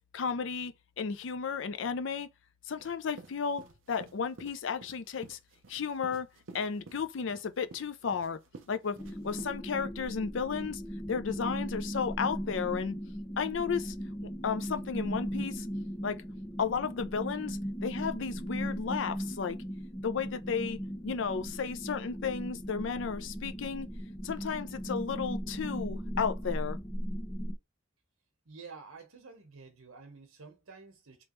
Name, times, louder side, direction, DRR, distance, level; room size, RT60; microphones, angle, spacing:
voice 1, 0.1-2.3 2.7-5.4 5.7-6.3 6.5-8.4 8.7-9.0 9.2-10.8 11.1-13.0 13.4-13.9 14.4-15.7 16.0-16.2 16.6-19.6 20.0-20.8 21.0-23.9 24.2-26.8, left 6 dB, 60° left, 0.4 m, -33 dB
sound 1, 2.8-9.5, right 3 dB, 65° right, 0.6 m, -52 dB
sound 2, 9.0-27.6, equal, 15° left, 0.7 m, -38 dB
voice 2, 28.4-31.2, right 4 dB, 90° right, 1.2 m, -50 dB
3.5 x 2.9 x 3.0 m
head